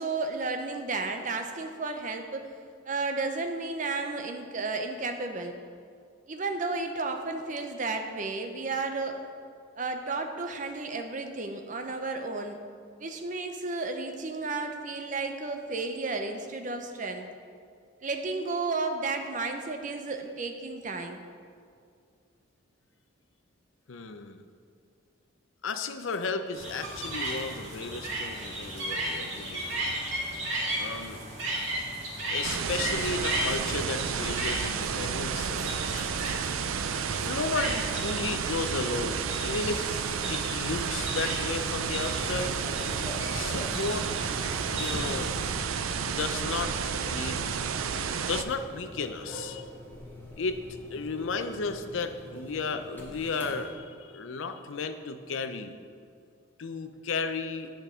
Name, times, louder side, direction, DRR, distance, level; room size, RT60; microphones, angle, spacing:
voice 1, 0.0-2.5 2.9-5.5 6.3-9.3 9.8-12.6 13.0-17.3 18.0-21.2, right 3 dB, 40° right, 5 dB, 0.6 m, -33 dB
voice 2, 23.9-24.4 25.6-29.7 30.8-31.2 32.3-36.1 37.2-42.6 43.3-44.4 44.7-45.3 45.9-47.6 48.3-49.7 50.4-50.6 50.9-55.8 56.6-57.7, left 4 dB, 75° left, 9 dB, 0.6 m, -34 dB
sound 1, 26.5-45.5, right 1 dB, 70° right, 2.3 m, -36 dB
sound 2, 32.4-48.4, right 6 dB, 90° right, 0.5 m, -31 dB
sound 3, 40.7-53.7, equal, 10° left, 1.2 m, -44 dB
9.2 x 5.2 x 6.1 m, 2.3 s
head